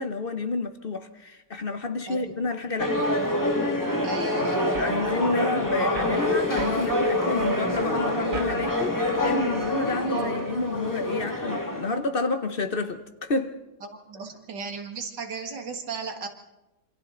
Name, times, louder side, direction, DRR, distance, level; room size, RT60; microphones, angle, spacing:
voice 1, 0.0-3.1 4.8-13.6, left 3 dB, 40° left, 0.9 m, -29 dB
voice 2, 2.1-2.4 4.0-4.9 13.8-16.3, right 4 dB, 90° right, 2.4 m, -35 dB
sound 1, 2.8-12.0, left 1 dB, 10° left, 1.9 m, -26 dB
sound 2, 4.6-9.8, right 4 dB, 50° right, 1.8 m, -38 dB
27.5 x 25.0 x 3.9 m
omnidirectional pair, 1.8 m